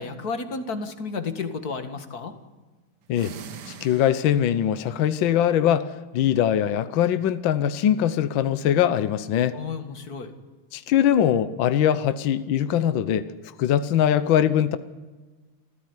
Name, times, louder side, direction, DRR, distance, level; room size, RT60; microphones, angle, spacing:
voice 1, 0.0-2.3 9.5-10.3, left 4 dB, 45° left, 8 dB, 2.3 m, -32 dB
sound 1, 3.0-4.7, right 7 dB, 55° right, 1.7 m, -42 dB
voice 2, 3.7-9.6 10.7-13.3 13.6-14.8, left 10 dB, 70° left, 12 dB, 1.6 m, -22 dB
27.5 x 15.5 x 9.7 m, 1.3 s
omnidirectional pair, 2.3 m